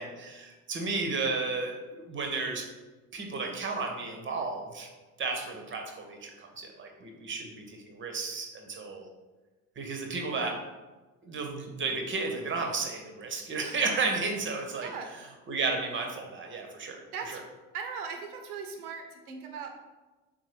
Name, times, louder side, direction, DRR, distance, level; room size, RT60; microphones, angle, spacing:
voice 1, 0.0-2.6 3.1-4.9 5.2-9.1 9.8-10.5 11.2-14.9 15.5-17.0 17.3-17.4, right 4 dB, 25° right, 2 dB, 0.7 m, -33 dB
voice 2, 14.8-15.1 17.1-17.4 17.7-19.7, right 5 dB, 75° right, 4 dB, 0.7 m, -39 dB
3.8 x 3.7 x 3.0 m, 1.2 s
figure-of-eight pair, 55°, 44 cm